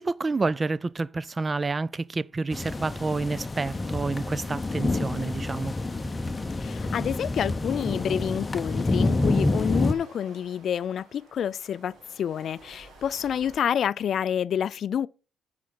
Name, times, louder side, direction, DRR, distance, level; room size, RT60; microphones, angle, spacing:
voice 1, 0.0-5.7, right 3 dB, 30° right, 0.4 m, -29 dB
sound 1, 2.5-9.9, left 2 dB, 20° left, 0.7 m, -28 dB
sound 2, 3.5-13.6, right 2 dB, 75° right, 2.5 m, -53 dB
voice 2, 6.6-15.1, left 9 dB, 60° left, 0.3 m, -28 dB
8.4 x 4.9 x 5.8 m
cardioid pair, 90°, 0 cm